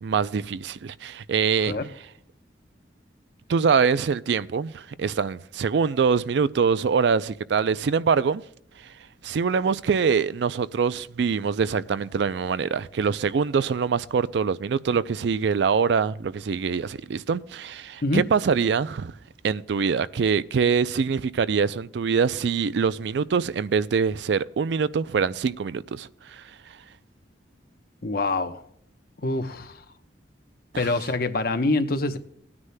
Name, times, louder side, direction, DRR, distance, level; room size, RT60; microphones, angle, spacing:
voice 1, 0.0-1.8 3.5-8.4 9.2-19.1 19.4-26.4 30.7-30.9, right 5 dB, 65° right, 0.4 m, -24 dB
voice 2, 28.0-28.7 29.2-29.8 30.7-32.2, left 2 dB, 55° left, 0.8 m, -25 dB
18.0 x 9.7 x 2.2 m
head